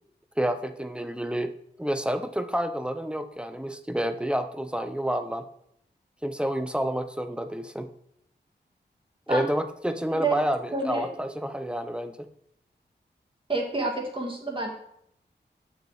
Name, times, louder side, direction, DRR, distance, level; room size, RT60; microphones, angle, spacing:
voice 1, 0.4-5.5 6.2-7.9 9.3-12.3, equal, 5° right, 9 dB, 0.7 m, -29 dB
voice 2, 10.7-11.1 13.5-14.7, right 3 dB, 25° right, 0 dB, 2.1 m, -28 dB
7.5 x 6.4 x 3.5 m, 0.71 s
cardioid pair, 55°, 19 cm